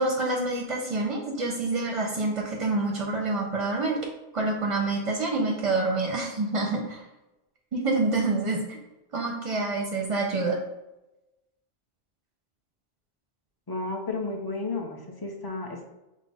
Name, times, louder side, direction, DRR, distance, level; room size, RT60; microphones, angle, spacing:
voice 1, 0.0-4.0 4.3-7.0 7.7-8.8 9.1-10.6, right 2 dB, 40° right, 0 dB, 0.6 m, -27 dB
voice 2, 13.7-15.8, left 3 dB, 30° left, 0 dB, 0.6 m, -32 dB
6.1 x 2.1 x 4.2 m, 0.98 s
omnidirectional pair, 1.0 m